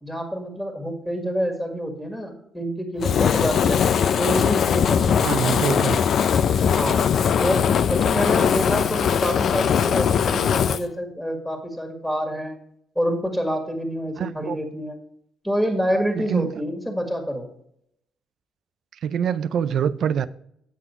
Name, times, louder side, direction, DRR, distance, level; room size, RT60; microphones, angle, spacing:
voice 1, 0.0-3.9 4.2-5.6 6.7-7.0 7.4-12.6 13.0-15.0 15.4-17.5, equal, 5° left, 2.0 m, -27 dB
Fire, 3.0-10.8, left 7 dB, 60° left, 0.4 m, -20 dB
voice 2, 5.2-6.0 14.2-14.6 16.1-16.5 19.0-20.3, right 8 dB, 70° right, 0.5 m, -24 dB
9.4 x 6.2 x 4.4 m
cardioid pair, 90°, 0 cm